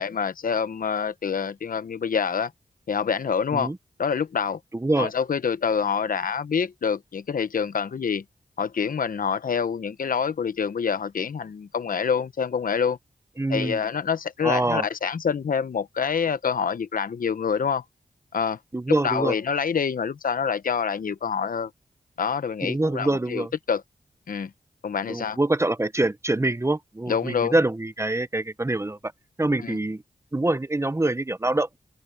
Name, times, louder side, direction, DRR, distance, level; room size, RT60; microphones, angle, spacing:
voice 1, 0.0-2.5 2.9-3.7 4.0-4.6 5.0-8.2 8.6-13.0 13.5-17.8 18.3-18.6 18.9-21.7 22.2-23.8 24.3-24.5 24.8-25.4 27.1-27.6 29.6-29.8, left 6 dB, 70° left, 0.9 m, -26 dB
voice 2, 4.7-5.1 13.4-13.8 14.4-14.9 18.7-19.3 22.6-23.5 25.1-29.0 29.4-30.0 30.3-31.7, right 2 dB, 20° right, 0.9 m, -25 dB
open air
cardioid pair, 65°, 15 cm